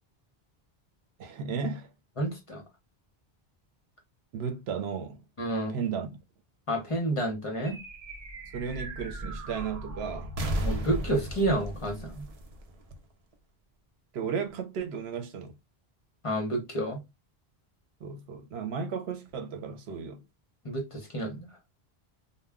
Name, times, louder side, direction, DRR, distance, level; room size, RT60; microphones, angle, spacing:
voice 1, 1.2-1.9 4.3-5.2 5.7-6.1 8.5-10.3 14.1-15.5 18.0-20.2, right 6 dB, 80° right, 0.9 m, -34 dB
voice 2, 2.2-2.6 5.4-5.7 6.7-7.8 10.6-12.2 16.2-17.0 20.6-21.5, right 1 dB, 35° left, 0.7 m, -30 dB
sound 1, 7.6-13.3, right 1 dB, 45° right, 0.5 m, -36 dB
2.1 x 2.1 x 3.5 m
omnidirectional pair, 1.1 m